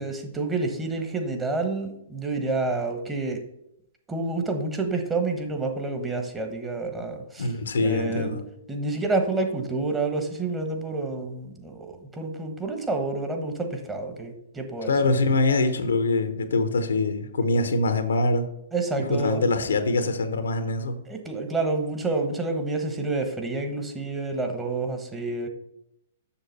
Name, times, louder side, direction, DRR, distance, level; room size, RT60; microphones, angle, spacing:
voice 1, 0.0-3.4 4.1-7.5 7.8-8.4 8.7-15.3 18.7-19.5 21.0-25.5, right 3 dB, 15° right, 5 dB, 1.3 m, -29 dB
voice 2, 7.4-8.4 14.9-18.5 19.2-21.0, left 2 dB, 80° left, 9 dB, 1.0 m, -24 dB
7.2 x 6.3 x 4.2 m, 0.79 s
hypercardioid pair, 120°, 0 cm